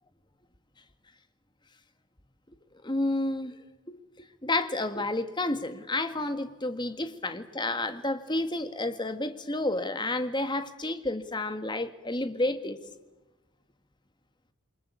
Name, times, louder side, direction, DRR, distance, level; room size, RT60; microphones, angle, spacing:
voice 1, 2.8-3.6 3.9-12.8, left 2 dB, 20° left, 9 dB, 1.7 m, -30 dB
28.5 x 23.5 x 8.4 m, 1.1 s
head